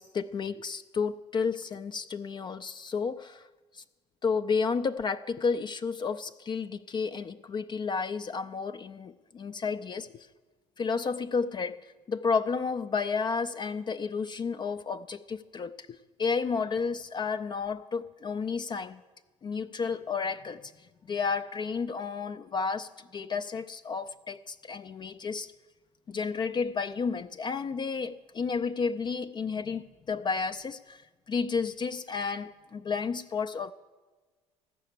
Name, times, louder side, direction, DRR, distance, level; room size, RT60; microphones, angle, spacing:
voice 1, 0.0-3.4 4.2-10.3 10.8-11.8 12.1-19.0 19.4-20.6 21.1-25.5 26.1-31.0 31.3-33.7, left 5 dB, 30° left, 0.4 m, -31 dB
14.5 x 5.7 x 8.2 m
hypercardioid pair, 65°, 16 cm